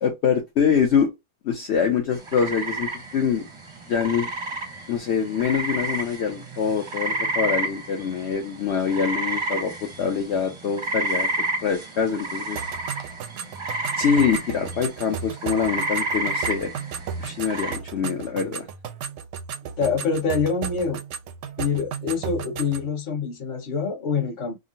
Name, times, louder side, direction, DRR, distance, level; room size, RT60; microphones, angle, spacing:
voice 1, 0.0-1.1 1.4-3.5 3.9-4.3 4.9-11.3 11.6-12.6 14.0-16.7 17.2-18.7, left 7 dB, 60° left, 0.9 m, -24 dB
sound 1, 2.1-17.7, right 2 dB, 25° right, 0.7 m, -30 dB
sound 2, 12.5-22.9, right 6 dB, 65° right, 0.8 m, -35 dB
voice 2, 19.8-21.0 21.6-24.6, left 5 dB, 40° left, 1.0 m, -25 dB
3.7 x 2.0 x 2.5 m
omnidirectional pair, 1.5 m